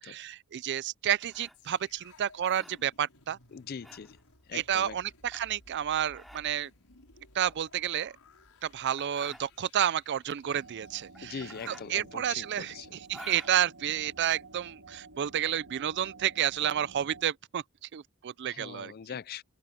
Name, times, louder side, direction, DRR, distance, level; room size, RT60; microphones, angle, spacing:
voice 1, 0.0-3.4 4.5-6.7 7.3-8.1 8.6-17.6 17.9-18.9, right 10 dB, 50° right, 0.4 m, -30 dB
sound 1, 1.2-14.7, equal, ahead, 3.4 m, -52 dB
sound 2, 1.5-12.7 13.1-13.2, left 3 dB, 75° left, 5.9 m, -59 dB
voice 2, 3.5-4.2 4.5-5.0 11.2-13.0 18.5-19.4, left 6 dB, 45° left, 0.4 m, -42 dB
sound 3, 10.4-17.2, right 3 dB, 75° right, 2.0 m, -51 dB
open air
head